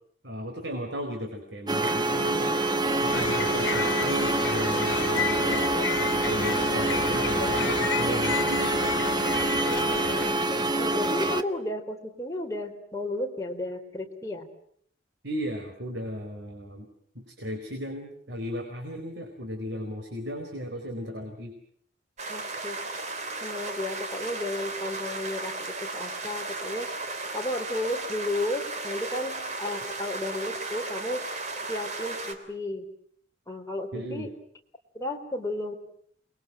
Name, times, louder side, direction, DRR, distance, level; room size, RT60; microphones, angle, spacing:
voice 1, 0.2-2.5 3.0-5.7 6.0-8.9 15.2-16.9 17.1-21.5 33.9-34.3, equal, 65° right, 3 dB, 4.5 m, -36 dB
sound 1, 1.7-11.4, right 2 dB, 25° right, 1.2 m, -26 dB
sound 2, 2.8-10.5, left 5 dB, 90° left, 1.6 m, -31 dB
voice 2, 10.1-14.5 22.3-22.8 23.4-25.5 25.8-26.9 27.3-31.2 31.7-32.9 33.5-34.3 34.9-35.8, left 1 dB, 15° left, 1 dB, 4.0 m, -33 dB
sound 3, 22.2-32.3, right 3 dB, 40° right, 3.2 m, -35 dB
29.0 x 22.0 x 7.7 m, 0.66 s
head